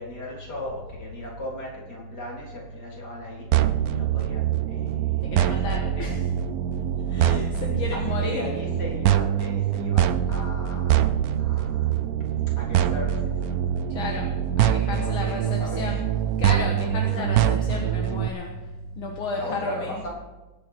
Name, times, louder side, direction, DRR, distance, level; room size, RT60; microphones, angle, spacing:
voice 1, 0.0-6.2 7.9-12.0 12.5-13.6 14.9-15.8 17.0-17.6 19.4-20.1, left 1 dB, 50° left, -3 dB, 4.1 m, -38 dB
sound 1, 3.5-18.3, right 10 dB, 90° right, 0.8 m, -24 dB
voice 2, 5.2-6.3 7.1-8.5 13.9-16.0 16.4-18.5 19.0-20.1, left 3 dB, 70° left, 1 dB, 2.3 m, -32 dB
21.0 x 9.0 x 4.5 m, 1.1 s
omnidirectional pair, 2.4 m